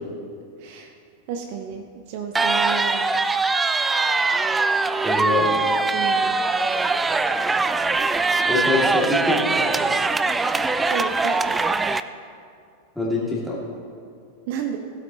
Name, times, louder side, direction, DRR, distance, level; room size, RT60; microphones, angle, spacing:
voice 1, 0.6-0.9 1.3-3.1 5.9-6.4 10.9-11.7 14.5-14.8, right 7 dB, 50° right, 5 dB, 0.7 m, -31 dB
sound 1, 2.3-12.0, right 3 dB, 10° right, 0.3 m, -22 dB
voice 2, 5.0-5.6 8.4-9.8 13.0-13.6, left 2 dB, 5° left, -6 dB, 2.6 m, -24 dB
16.5 x 8.2 x 3.0 m, 2.3 s
figure-of-eight pair, 90°, 0 cm